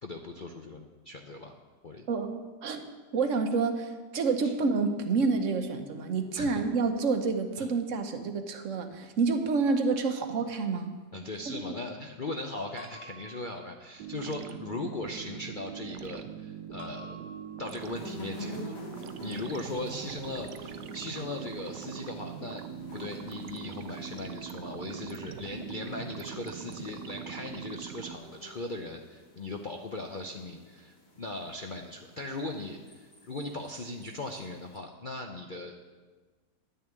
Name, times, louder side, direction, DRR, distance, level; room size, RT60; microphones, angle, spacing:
voice 1, 0.0-1.6 1.8-2.0 4.4-4.5 6.4-6.5 7.6-7.7 11.1-17.2 17.6-18.8 19.2-22.7 22.9-35.8, left 2 dB, 50° left, 3 dB, 0.6 m, -38 dB
voice 2, 2.1-2.8 3.1-10.9 11.5-11.6, right 4 dB, 50° right, 7 dB, 1.2 m, -28 dB
sound 1, 12.8-14.1 16.8-18.0, left 1 dB, 30° right, 1.2 m, -50 dB
sound 2, 14.0-28.2, right 9 dB, 75° right, 1.2 m, -42 dB
sound 3, 17.6-34.8, left 1 dB, 75° left, 3.2 m, -49 dB
10.5 x 6.7 x 9.1 m, 1.4 s
omnidirectional pair, 1.9 m